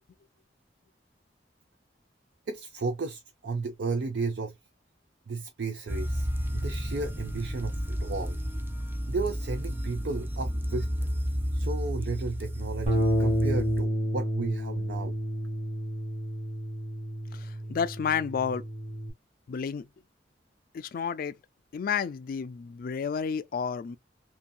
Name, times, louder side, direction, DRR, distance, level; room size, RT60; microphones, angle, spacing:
voice 1, 2.5-4.5 5.3-6.3 6.5-8.4 9.1-10.9 11.5-15.1, right 4 dB, 75° right, 0.5 m, -33 dB
sound 1, 5.9-13.8, equal, 10° right, 0.4 m, -32 dB
Bass guitar, 12.9-19.1, equal, 45° right, 1.2 m, -30 dB
voice 2, 17.3-18.6 19.5-19.9 20.7-21.4 21.7-24.0, left 6 dB, 55° left, 0.3 m, -31 dB
2.7 x 2.6 x 2.2 m
head